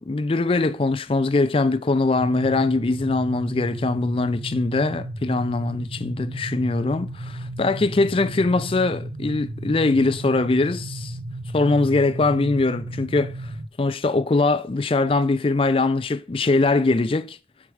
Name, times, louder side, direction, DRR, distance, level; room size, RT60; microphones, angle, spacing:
voice 1, 0.1-11.1 11.5-13.5 13.8-17.4, left 3 dB, 30° left, 0.4 m, -22 dB
sound 1, 2.2-13.7, right 1 dB, 40° right, 0.6 m, -34 dB
8.6 x 4.4 x 4.7 m
head